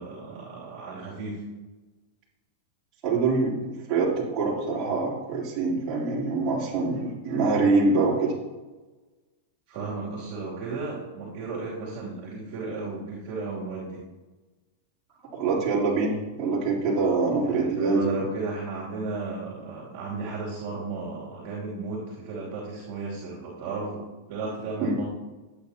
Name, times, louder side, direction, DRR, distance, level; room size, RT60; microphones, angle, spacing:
voice 1, 0.0-1.4 9.7-14.0 17.4-24.0 24.3-25.0, right 3 dB, 50° right, -4 dB, 2.8 m, -34 dB
voice 2, 3.0-8.3 15.3-18.2 24.8-25.0, right 3 dB, 35° right, -6 dB, 3.4 m, -25 dB
12.0 x 8.7 x 2.9 m, 1.2 s
supercardioid pair, 135°, 0 cm